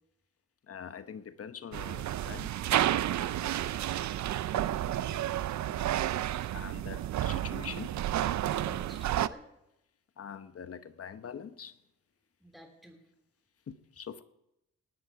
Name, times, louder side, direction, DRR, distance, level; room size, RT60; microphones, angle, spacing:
voice 1, 0.7-2.5 5.6-5.9 6.5-8.0 10.2-11.7 13.7-14.2, left 7 dB, 50° left, 1.0 m, -44 dB
sound 1, 1.7-9.3, right 12 dB, 75° right, 0.6 m, -31 dB
voice 2, 4.3-5.0 8.5-9.5 12.4-13.0, right 1 dB, ahead, 3.3 m, -51 dB
19.0 x 11.5 x 4.8 m
cardioid pair, 70°, 29 cm